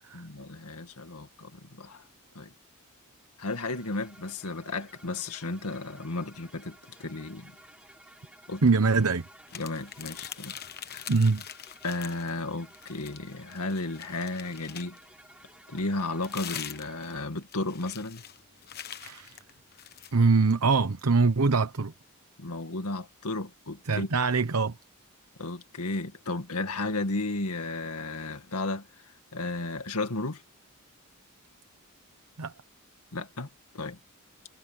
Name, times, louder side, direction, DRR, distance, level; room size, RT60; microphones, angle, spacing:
voice 1, 0.1-2.0 2.3-2.5 3.4-7.5 8.5-8.6 9.5-10.6 10.9-11.1 11.8-15.0 15.7-18.2 22.4-24.1 25.4-28.9 29.3-30.4 33.1-33.5 33.7-34.0, left 2 dB, 90° left, 2.1 m, -34 dB
sound 1, 3.5-17.2, right 1 dB, 5° right, 5.1 m, -55 dB
voice 2, 8.6-9.2 11.1-11.4 19.0-19.4 20.1-21.9 23.9-24.7 32.4-32.5, right 4 dB, 75° right, 0.9 m, -23 dB
sound 2, 9.5-12.4 12.7-15.1 15.8-20.2, left 10 dB, 45° left, 1.2 m, -43 dB
head